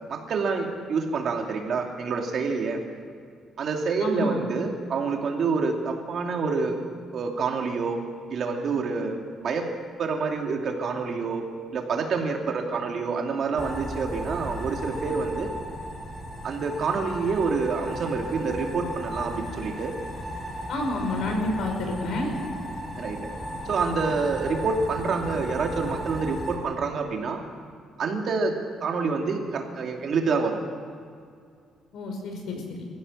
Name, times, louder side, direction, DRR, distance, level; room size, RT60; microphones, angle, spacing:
voice 1, 0.1-2.8 3.6-6.8 7.1-8.0 8.3-9.7 10.0-11.5 11.7-15.5 16.4-19.9 23.0-23.2 23.7-27.4 28.0-28.5 28.8-30.6, right 4 dB, 45° right, 2 dB, 2.6 m, -27 dB
voice 2, 4.0-4.4 20.7-22.3 31.9-32.8, left 1 dB, 65° left, 3 dB, 5.4 m, -29 dB
sound 1, 13.6-26.6, equal, 5° left, 5.3 m, -36 dB
25.5 x 15.5 x 7.3 m, 2.2 s
cardioid pair, 160°, 0 cm